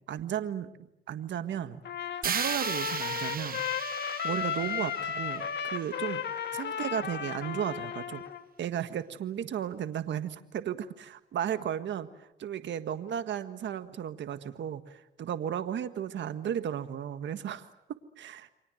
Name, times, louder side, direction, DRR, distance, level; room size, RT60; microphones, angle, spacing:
voice 1, 0.1-1.8 2.2-3.6 4.2-6.2 6.5-8.2 8.6-17.7 18.2-18.5, right 9 dB, 65° right, 10 dB, 1.7 m, -34 dB
Trumpet, 1.9-8.4, left 8 dB, 60° left, 2.6 m, -34 dB
sound 1, 2.2-6.3, right 8 dB, 45° right, 1.0 m, -36 dB
29.5 x 24.5 x 7.8 m, 0.85 s
cardioid pair, 90°, 20 cm